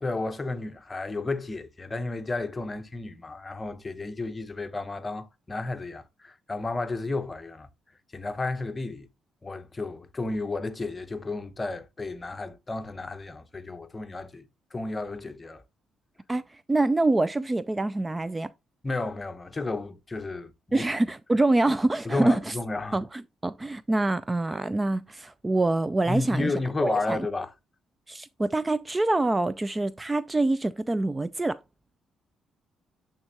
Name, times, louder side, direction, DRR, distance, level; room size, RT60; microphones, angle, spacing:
voice 1, 0.0-7.7 8.1-9.1 9.4-15.6 18.8-20.9 22.0-23.0 26.1-27.5, left 2 dB, 25° left, 0.9 m, -32 dB
voice 2, 16.7-18.5 20.7-22.5 22.9-26.5 26.8-27.3 28.1-31.6, right 2 dB, 20° right, 0.3 m, -25 dB
8.7 x 3.7 x 3.2 m
cardioid pair, 90°, 0 cm